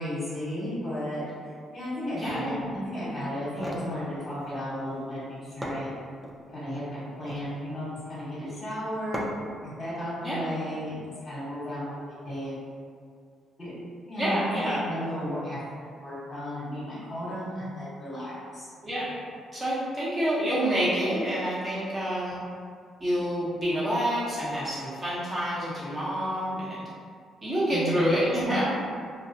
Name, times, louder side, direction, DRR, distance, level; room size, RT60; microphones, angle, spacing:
voice 1, 0.0-5.9 6.5-9.2 9.6-11.9 12.2-12.6 13.6-13.7 14.1-15.6 15.9-18.7 27.7-28.0, equal, 30° left, -10 dB, 1.1 m, -34 dB
voice 2, 2.1-2.7 10.2-10.4 14.2-14.8 18.8-19.1 19.5-22.4 23.0-26.9 27.4-28.6, equal, 25° right, -9 dB, 1.0 m, -28 dB
sound 1, 3.4-3.9 5.2-5.3 5.6-6.4 7.1-7.5 9.1-9.6, equal, 10° right, 0.4 m, -36 dB
2.4 x 2.0 x 2.7 m, 2.1 s
cardioid pair, 80°, 0 cm